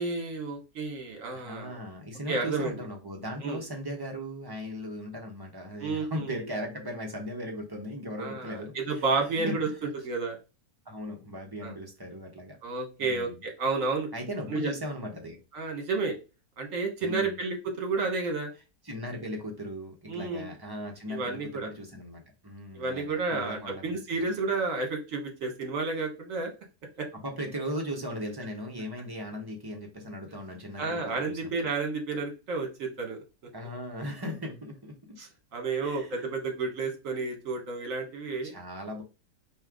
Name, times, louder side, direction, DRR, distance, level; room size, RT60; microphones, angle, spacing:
voice 1, 0.0-1.8 2.3-2.8 3.4-3.6 5.8-6.4 8.2-10.4 11.6-11.7 12.6-14.1 14.5-14.7 15.5-16.1 16.6-18.5 20.1-20.5 21.1-21.7 22.7-26.5 27.0-27.1 30.8-33.2 35.2-38.5, right 3 dB, 60° right, 4 dB, 1.6 m, -31 dB
voice 2, 1.3-9.8 10.8-12.6 13.0-13.4 14.1-15.4 17.0-17.4 18.8-24.3 27.1-31.5 33.5-35.2 35.8-36.3 38.4-39.0, equal, 15° right, 1 dB, 1.0 m, -38 dB
4.4 x 3.2 x 3.7 m, 0.29 s
omnidirectional pair, 1.6 m